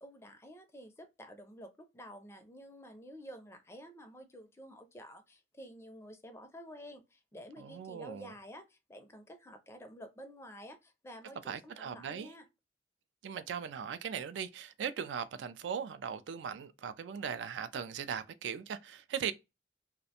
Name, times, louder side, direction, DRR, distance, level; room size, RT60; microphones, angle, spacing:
voice 1, 0.0-12.4, equal, 15° left, 0.4 m, -50 dB
voice 2, 7.6-8.3 11.5-12.3 13.2-19.3, right 7 dB, 85° right, 0.3 m, -39 dB
2.4 x 2.1 x 2.7 m
head